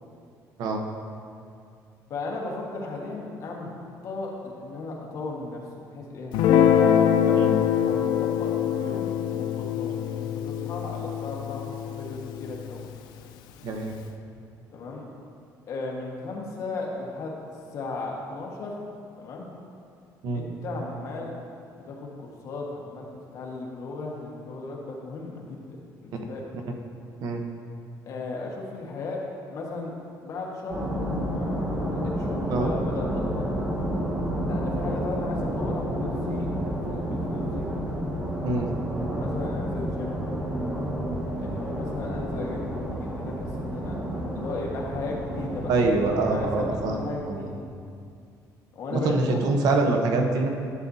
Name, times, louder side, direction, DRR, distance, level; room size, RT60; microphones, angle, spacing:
voice 1, 2.1-3.7 4.0-6.3 6.6-12.8 14.7-15.1 15.7-17.4 17.7-18.8 19.2-19.5 20.3-21.4 21.9-26.5 28.0-29.2 29.5-29.9 30.2-30.9 31.2-33.5 34.4-37.7 39.1-40.2 41.4-44.0 44.3-45.7 46.1-47.5 48.7-49.4, left 3 dB, 50° left, -2 dB, 1.4 m, -36 dB
Guitar, 6.3-12.9, left 9 dB, 90° left, 0.5 m, -24 dB
voice 2, 13.6-14.0 20.2-20.4 27.2-27.4 32.5-32.7 38.4-38.7 45.7-47.5 48.9-50.5, right 3 dB, 65° right, 3 dB, 0.9 m, -25 dB
sound 1, 30.7-47.0, equal, 15° right, 1.2 m, -30 dB
11.0 x 8.3 x 2.7 m, 2.4 s
cardioid pair, 150°, 7 cm